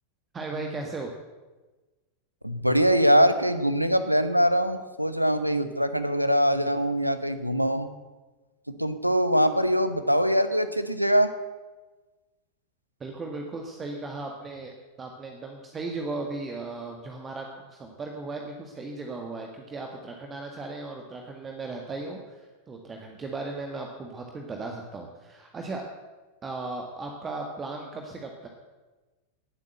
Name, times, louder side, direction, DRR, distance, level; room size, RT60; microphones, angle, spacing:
voice 1, 0.3-1.1 13.0-25.8 26.4-28.5, right 3 dB, 20° right, 2 dB, 1.7 m, -36 dB
voice 2, 2.4-7.9 8.8-11.3, equal, 90° right, 11 dB, 1.0 m, -23 dB
18.0 x 8.3 x 8.0 m, 1.2 s
figure-of-eight pair, 90°, 0 cm